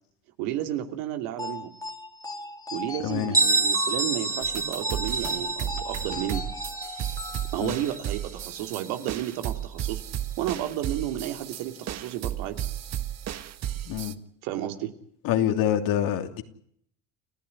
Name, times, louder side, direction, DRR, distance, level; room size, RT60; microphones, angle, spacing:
voice 1, 0.4-1.7 2.7-6.4 7.5-10.0 10.4-12.6 14.4-14.9, right 12 dB, 80° right, 7 dB, 2.9 m, -32 dB
sound 1, 1.4-8.2, left 2 dB, 10° left, 2.3 m, -39 dB
voice 2, 3.0-3.3 7.6-7.8 13.9-14.1 15.2-16.4, left 11 dB, 70° left, 6 dB, 3.0 m, -26 dB
Bell, 3.3-8.9, right 3 dB, 10° right, 1.9 m, -28 dB
sound 2, 4.4-14.1, right 11 dB, 45° right, 1.5 m, -34 dB
29.5 x 14.5 x 9.9 m, 0.66 s
supercardioid pair, 100°, 35 cm